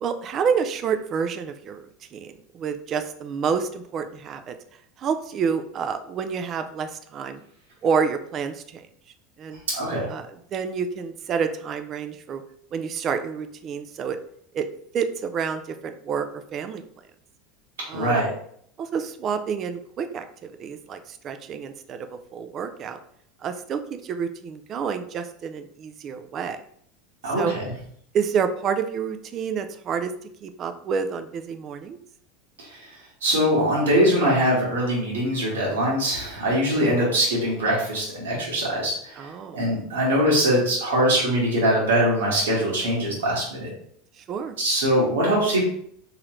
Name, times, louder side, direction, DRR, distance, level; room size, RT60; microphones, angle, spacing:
voice 1, 0.0-4.6 5.0-7.4 7.8-8.8 9.4-9.6 10.1-12.4 12.7-14.2 14.5-14.6 14.9-16.8 17.9-18.3 18.8-23.0 23.4-26.6 27.3-27.5 28.1-30.1 30.4-32.0 39.2-39.6 44.2-44.5, right 6 dB, 40° right, 8 dB, 0.4 m, -28 dB
voice 2, 9.7-10.1 17.9-18.3 27.2-27.7 32.6-32.9 33.2-43.7 44.6-45.6, equal, 90° right, -4 dB, 1.5 m, -22 dB
3.7 x 3.0 x 3.1 m, 0.66 s
hypercardioid pair, 105°, 0 cm